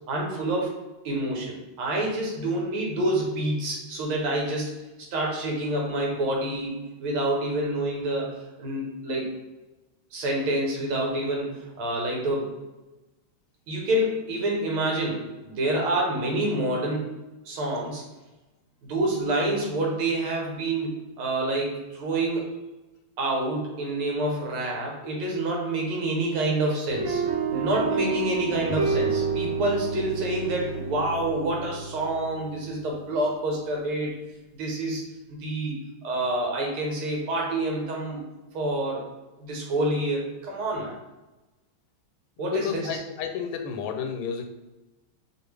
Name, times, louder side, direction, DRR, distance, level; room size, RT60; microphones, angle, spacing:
voice 1, 0.1-0.8 1.0-9.3 10.1-12.5 13.7-17.1 17.4-18.0 18.8-22.5 23.2-27.2 27.5-34.1 34.5-35.0 35.3-38.2 38.5-39.1 39.4-40.9 42.4-43.0, right 1 dB, 75° right, -1 dB, 1.9 m, -27 dB
sound 1, 26.9-33.1, right 4 dB, 60° right, 0.9 m, -29 dB
voice 2, 42.4-44.5, left 7 dB, 85° left, 5 dB, 1.5 m, -31 dB
5.0 x 2.4 x 3.3 m, 1.1 s
omnidirectional pair, 2.4 m